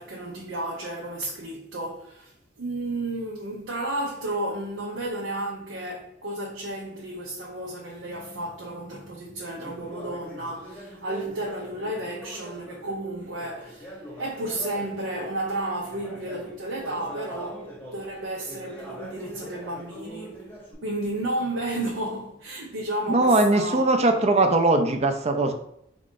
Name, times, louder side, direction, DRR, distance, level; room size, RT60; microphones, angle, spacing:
voice 1, 0.0-2.3 2.6-20.5 20.8-23.8, right 1 dB, 85° right, 0.7 m, -32 dB
Conversation, 9.6-15.4 15.8-20.7, equal, 10° left, 0.9 m, -42 dB
voice 2, 23.1-25.5, right 2 dB, 35° right, 0.5 m, -20 dB
3.8 x 2.5 x 3.7 m
head